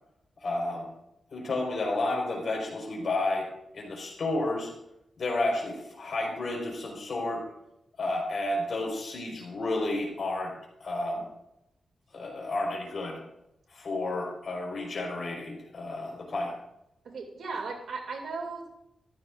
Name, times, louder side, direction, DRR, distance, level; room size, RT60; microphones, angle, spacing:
voice 1, 0.4-0.9 1.3-3.5 3.7-4.7 5.2-7.5 8.0-10.5 10.8-11.3 12.1-13.2 13.7-16.5, left 2 dB, 60° left, -1 dB, 5.0 m, -31 dB
voice 2, 17.0-18.7, right 4 dB, 80° right, 1 dB, 2.8 m, -36 dB
14.5 x 13.5 x 2.6 m, 0.83 s
wide cardioid pair, 100°, 0 cm